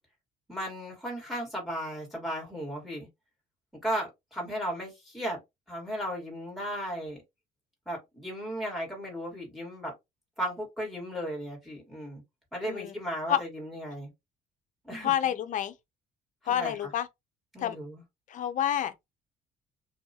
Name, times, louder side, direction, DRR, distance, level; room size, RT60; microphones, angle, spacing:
voice 1, 0.5-3.1 3.8-5.4 5.7-7.2 7.9-9.9 10.4-12.2 12.5-14.1 14.8-15.3 16.4-16.9 17.5-18.0, equal, ahead, 1.5 m, -35 dB
voice 2, 12.6-12.9 13.3-13.4 15.0-15.7 16.5-17.1 17.6-17.8 18.3-18.9, left 10 dB, 50° left, 0.5 m, -28 dB
2.6 x 2.3 x 2.7 m
cardioid pair, 110°, 17 cm